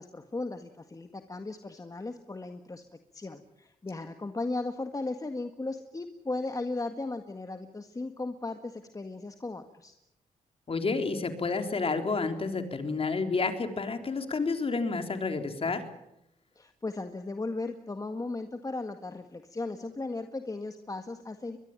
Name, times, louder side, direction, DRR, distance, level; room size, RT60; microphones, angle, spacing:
voice 1, 0.0-2.8 3.1-9.9 16.6-21.6, left 2 dB, 25° left, 7 dB, 1.8 m, -36 dB
voice 2, 10.7-15.8, left 4 dB, 45° left, 6 dB, 3.8 m, -30 dB
23.0 x 21.5 x 9.0 m, 0.84 s
cardioid pair, 70°, 14 cm